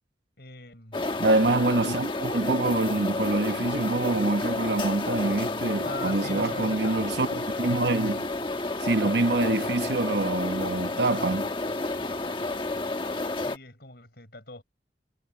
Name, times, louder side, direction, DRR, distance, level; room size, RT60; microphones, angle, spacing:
voice 1, 0.4-1.0 5.8-7.1 13.3-14.6, left 2 dB, 60° left, 6.1 m, -41 dB
sound 1, 0.9-13.6, left 2 dB, 30° left, 1.4 m, -31 dB
voice 2, 0.9-8.3 8.8-11.5, right 2 dB, 75° right, 1.1 m, -26 dB
head